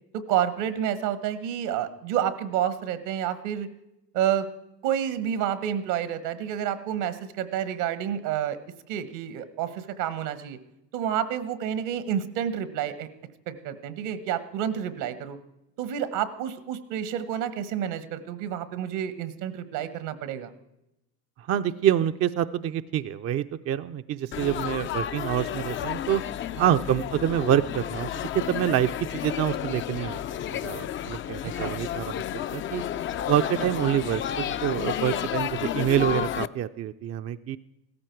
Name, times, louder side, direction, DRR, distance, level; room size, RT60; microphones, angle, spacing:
voice 1, 0.1-3.7 4.1-4.5 4.8-8.6 8.9-10.6 10.9-13.1 13.5-15.4 15.8-20.5 26.5-26.8 31.4-31.8 33.6-33.7, right 10 dB, 70° right, 14 dB, 1.4 m, -29 dB
voice 2, 21.5-26.2 26.6-28.1 28.5-30.2 30.5-32.2 32.5-32.8 33.3-37.6, right 11 dB, 35° right, 9 dB, 0.5 m, -26 dB
Laughter / Chatter / Crowd, 24.3-36.5, left 10 dB, 30° left, 0.4 m, -31 dB
16.0 x 13.5 x 4.6 m, 0.89 s
hypercardioid pair, 80°, 42 cm